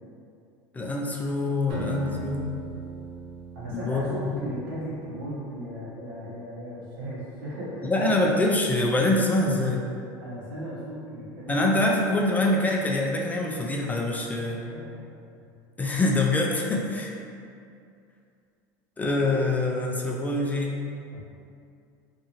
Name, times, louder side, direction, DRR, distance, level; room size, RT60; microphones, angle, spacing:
voice 1, 0.7-2.5 3.7-4.5 7.9-9.9 11.5-14.6 15.8-17.1 19.0-20.8, left 2 dB, 15° left, -1 dB, 0.3 m, -25 dB
Acoustic guitar, 1.7-4.7, right 4 dB, 65° right, 0.6 m, -38 dB
voice 2, 3.5-7.9 10.2-11.8 14.2-14.4 14.7-14.9 15.4-15.5 16.6-16.8 21.1-21.2, equal, 90° right, -8 dB, 1.0 m, -36 dB
2.6 x 2.5 x 2.8 m, 2.5 s
supercardioid pair, 105°, 11 cm